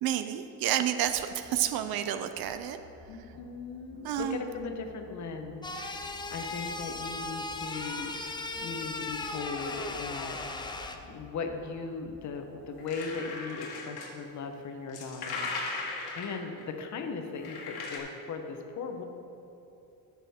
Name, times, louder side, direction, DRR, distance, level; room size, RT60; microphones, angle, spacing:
voice 1, 0.0-2.8 4.0-4.4, right 10 dB, 70° right, 10 dB, 0.5 m, -30 dB
sound 1, 1.1-13.2, equal, 85° right, 1.5 m, -55 dB
voice 2, 3.1-10.4 10.7-15.5 15.8-19.0, left 4 dB, 50° left, 5 dB, 0.9 m, -38 dB
sound 2, 5.6-11.0, left 3 dB, 15° left, 0.3 m, -37 dB
sound 3, 12.8-14.1 14.9-16.6 17.4-18.0, left 3 dB, 80° left, 1.5 m, -37 dB
13.0 x 6.1 x 3.5 m, 2.8 s
cardioid pair, 140°, 37 cm